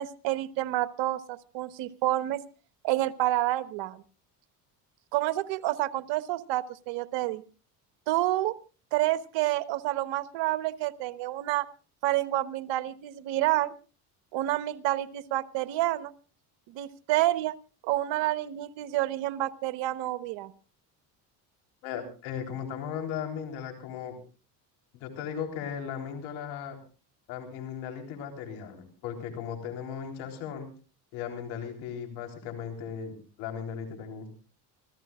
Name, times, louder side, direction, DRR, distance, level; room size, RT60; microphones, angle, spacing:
voice 1, 0.0-2.4 2.8-4.0 5.1-7.4 8.1-8.5 8.9-11.7 12.0-13.7 14.3-16.1 16.7-17.5 17.8-20.5, right 15 dB, 70° right, 13 dB, 1.2 m, -29 dB
voice 2, 21.8-24.2 24.9-26.8 27.3-30.7 31.1-34.3, left 7 dB, 80° left, 3 dB, 4.0 m, -37 dB
28.0 x 14.5 x 2.4 m, 0.36 s
supercardioid pair, 75°, 46 cm